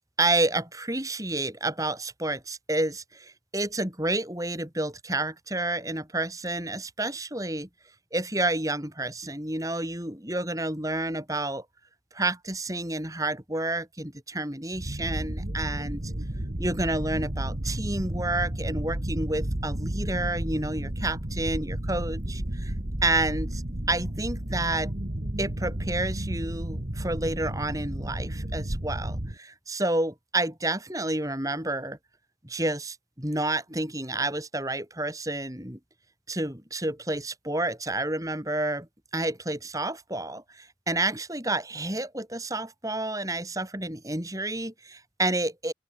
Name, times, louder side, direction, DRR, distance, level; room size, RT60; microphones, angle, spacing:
voice 1, 0.2-7.7 8.1-11.6 12.1-16.0 16.6-22.7 23.0-23.6 23.9-24.9 25.4-32.0 32.4-35.8 36.3-38.9 39.1-45.7, right 2 dB, 20° right, 5.9 m, -30 dB
sound 1, 14.7-29.4, right 1 dB, 40° right, 1.9 m, -32 dB
open air
head